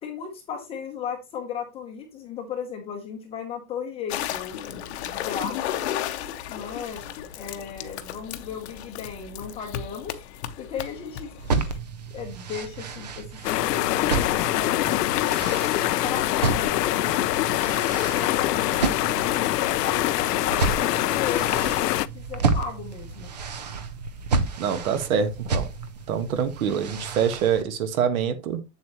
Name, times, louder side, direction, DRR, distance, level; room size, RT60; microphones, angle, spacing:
voice 1, 0.0-5.6 6.5-7.0 7.4-10.2 10.6-11.3 12.1-15.3 16.0-17.0 18.1-23.3, left 7 dB, 15° left, 0.7 m, -36 dB
sound 1, 4.1-11.8, left 11 dB, 45° left, 0.8 m, -34 dB
sound 2, 11.4-27.6, right 4 dB, 30° right, 0.4 m, -31 dB
sound 3, 13.4-22.1, left 16 dB, 80° left, 0.6 m, -24 dB
voice 2, 24.6-25.7 26.1-28.6, right 7 dB, 60° right, 1.5 m, -25 dB
7.7 x 7.4 x 2.9 m
supercardioid pair, 170°, 47 cm